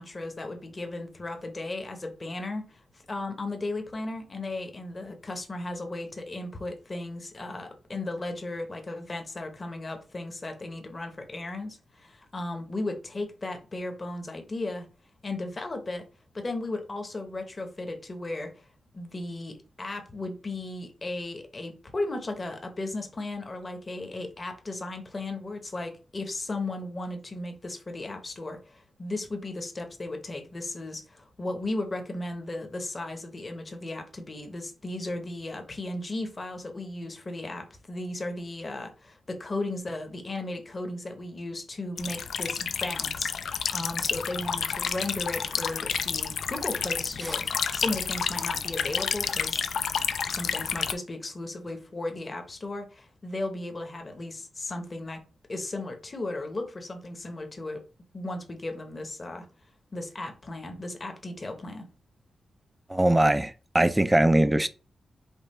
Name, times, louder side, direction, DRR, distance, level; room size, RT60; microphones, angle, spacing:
voice 1, 0.0-2.8 3.1-14.9 15.2-16.0 16.3-18.5 18.9-47.4 47.7-49.7 50.3-55.2 55.5-57.8 58.1-59.4 59.9-61.9, left 2 dB, 25° left, 0.8 m, -35 dB
sound 1, 42.0-50.9, left 6 dB, 70° left, 0.4 m, -30 dB
voice 2, 62.9-64.7, right 1 dB, 10° right, 0.3 m, -22 dB
5.3 x 2.3 x 4.2 m
wide cardioid pair, 165°, 0 cm